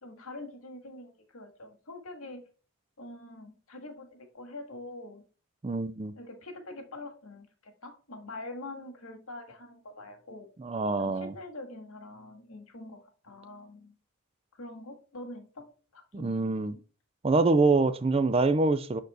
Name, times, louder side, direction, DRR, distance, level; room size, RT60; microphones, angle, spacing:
voice 1, 0.0-2.5 3.0-5.2 6.2-10.5 11.0-13.9 14.5-16.8, left 2 dB, 80° left, 1.8 m, -45 dB
voice 2, 5.6-6.1 10.6-11.3 16.1-16.8 17.2-19.0, right 3 dB, 25° right, 0.4 m, -25 dB
6.5 x 4.4 x 4.1 m
head